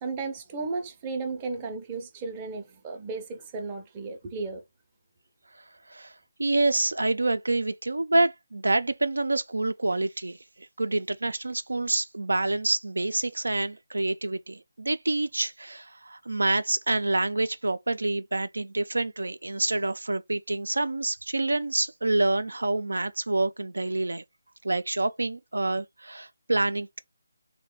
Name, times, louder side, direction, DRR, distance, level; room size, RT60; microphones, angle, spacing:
voice 1, 0.0-4.6, right 4 dB, 20° right, 0.5 m, -34 dB
voice 2, 6.4-10.4 10.8-24.2 24.6-27.0, right 2 dB, 80° right, 0.4 m, -27 dB
3.0 x 2.1 x 3.1 m
figure-of-eight pair, 155°, 0 cm